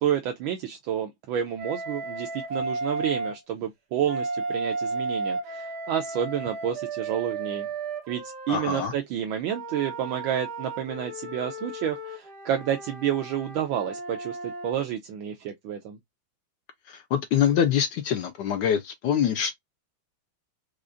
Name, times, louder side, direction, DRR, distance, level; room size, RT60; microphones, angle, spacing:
voice 1, 0.0-7.7 8.1-16.0, right 9 dB, 75° right, 1.3 m, -30 dB
Wind instrument woodwind instrument, 1.6-3.4 4.0-8.8 9.5-14.7, right 3 dB, 55° right, 1.7 m, -34 dB
voice 2, 8.5-8.9 16.9-19.6, left 8 dB, 70° left, 1.1 m, -25 dB
4.9 x 2.4 x 2.4 m
omnidirectional pair, 2.3 m